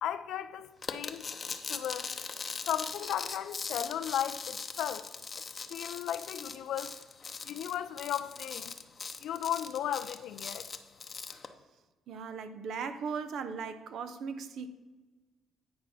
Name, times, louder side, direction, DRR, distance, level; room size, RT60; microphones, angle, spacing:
voice 1, 0.0-1.3 1.7-2.1 2.7-5.1 5.7-6.9 7.4-8.7 9.2-10.7, left 10 dB, 80° left, 0.4 m, -35 dB
sound 1, 0.8-11.5, left 5 dB, 40° left, 0.7 m, -40 dB
voice 2, 12.1-14.7, right 6 dB, 75° right, 0.6 m, -38 dB
9.3 x 4.7 x 5.8 m
cardioid pair, 90°, 0 cm